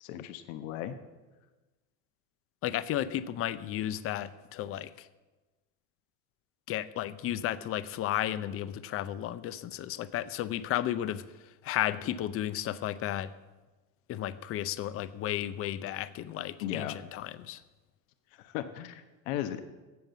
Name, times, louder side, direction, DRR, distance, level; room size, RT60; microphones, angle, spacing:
voice 1, 0.0-1.0 16.6-17.0 18.4-19.6, left 11 dB, 70° left, 9 dB, 1.1 m, -36 dB
voice 2, 2.6-5.1 6.7-13.3 14.1-17.6, left 12 dB, 35° left, 15 dB, 0.6 m, -33 dB
15.5 x 5.3 x 8.1 m, 1.2 s
supercardioid pair, 125°, 41 cm